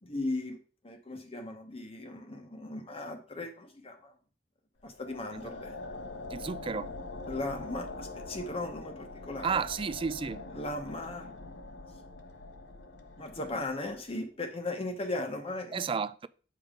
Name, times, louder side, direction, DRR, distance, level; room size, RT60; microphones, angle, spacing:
voice 1, 0.0-0.6 0.8-4.1 4.8-5.8 7.3-9.6 10.5-11.4 13.2-15.9, left 2 dB, 30° left, 1.0 m, -37 dB
sound 1, 4.8-14.1, left 2 dB, 75° left, 0.9 m, -44 dB
voice 2, 6.3-6.9 9.4-10.4 15.7-16.3, right 5 dB, 30° right, 0.3 m, -32 dB
8.5 x 5.2 x 3.7 m
head